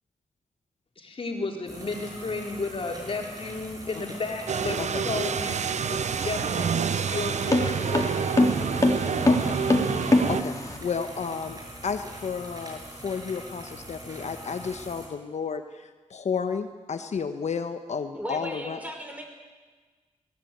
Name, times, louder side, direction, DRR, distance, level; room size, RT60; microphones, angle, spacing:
voice 1, 1.0-8.4, left 3 dB, 45° left, 1 dB, 4.2 m, -33 dB
sound 1, 1.7-15.1, equal, 30° right, 7.1 m, -42 dB
sound 2, 4.5-10.4, right 7 dB, 70° right, 0.7 m, -28 dB
sound 3, 6.0-10.8, left 1 dB, 25° left, 3.4 m, -24 dB
voice 2, 10.8-11.6 11.8-18.8, left 6 dB, 65° left, 7 dB, 1.2 m, -32 dB
voice 3, 18.2-19.2, equal, 10° right, 3 dB, 5.3 m, -36 dB
21.5 x 18.5 x 9.3 m, 1.4 s
wide cardioid pair, 85°, 12 cm